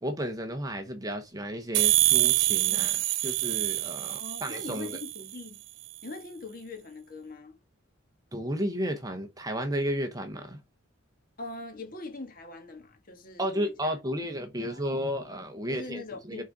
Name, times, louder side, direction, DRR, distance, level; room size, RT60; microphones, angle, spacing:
voice 1, 0.0-5.0 8.3-10.6 13.4-16.4, equal, 20° right, 0.8 m, -33 dB
sound 1, 1.7-5.3, right 17 dB, 65° right, 0.4 m, -26 dB
voice 2, 4.0-5.6 6.0-7.6 11.4-14.0 14.6-14.8 15.7-16.4, left 3 dB, 45° left, 1.6 m, -42 dB
6.2 x 3.9 x 4.7 m
head